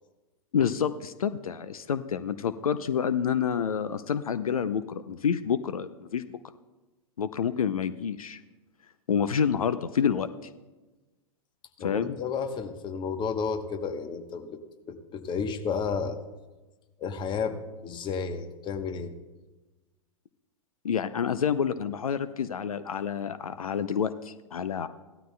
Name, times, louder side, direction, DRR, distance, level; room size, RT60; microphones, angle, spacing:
voice 1, 0.5-6.4 7.2-8.4 9.1-10.3 11.8-12.2 20.8-24.9, left 7 dB, 80° left, 13 dB, 0.5 m, -28 dB
voice 2, 11.8-14.6 14.9-16.2 17.0-17.6 17.8-19.1, left 5 dB, 25° left, 8 dB, 1.0 m, -32 dB
17.0 x 13.0 x 2.3 m, 1.2 s
figure-of-eight pair, 105°, 18 cm